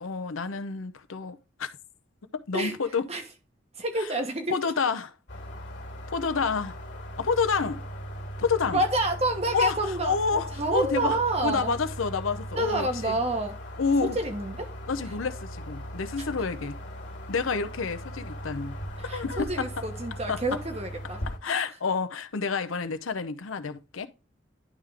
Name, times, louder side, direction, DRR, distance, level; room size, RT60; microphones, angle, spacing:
voice 1, 0.0-1.7 2.3-3.1 4.0-4.1 4.5-5.1 6.1-6.8 7.2-7.8 8.4-8.8 9.5-13.2 13.8-14.2 14.9-16.8 17.3-18.8 19.1-19.7 20.3-20.4 21.4-24.1, left 5 dB, 90° left, 0.7 m, -29 dB
voice 2, 3.8-4.6 8.7-11.7 12.5-13.6 14.1-14.7 16.2-16.3 19.0-21.2 21.5-21.6, right 2 dB, 30° right, 1.1 m, -28 dB
sound 1, 5.3-21.4, equal, 60° left, 1.9 m, -39 dB
11.0 x 3.7 x 3.4 m
head